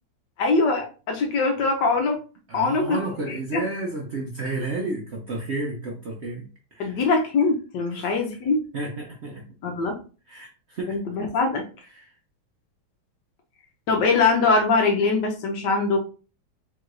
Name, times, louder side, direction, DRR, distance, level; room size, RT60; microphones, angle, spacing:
voice 1, 0.4-2.2 2.5-3.0 3.3-3.6 6.8-8.6 9.6-10.0 10.9-11.6 13.9-16.0, left 3 dB, 70° left, 3 dB, 1.3 m, -22 dB
voice 2, 2.5-7.0 7.9-8.1 8.7-9.4 10.3-11.0 11.9-12.1, right 2 dB, 75° right, -1 dB, 0.6 m, -32 dB
4.7 x 3.6 x 2.5 m, 0.35 s
omnidirectional pair, 2.2 m